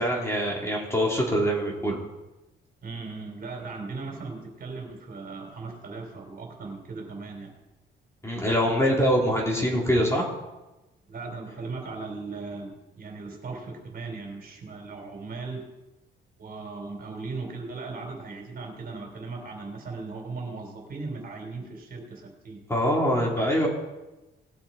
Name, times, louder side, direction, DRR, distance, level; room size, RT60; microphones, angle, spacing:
voice 1, 0.0-2.0 8.2-10.3 22.7-23.7, equal, 15° left, -2 dB, 3.8 m, -24 dB
voice 2, 2.8-7.5 11.1-15.7 16.4-22.6 23.4-23.7, right 3 dB, 50° right, 1 dB, 3.8 m, -38 dB
19.5 x 7.2 x 4.5 m, 1.1 s
cardioid pair, 90°, 20 cm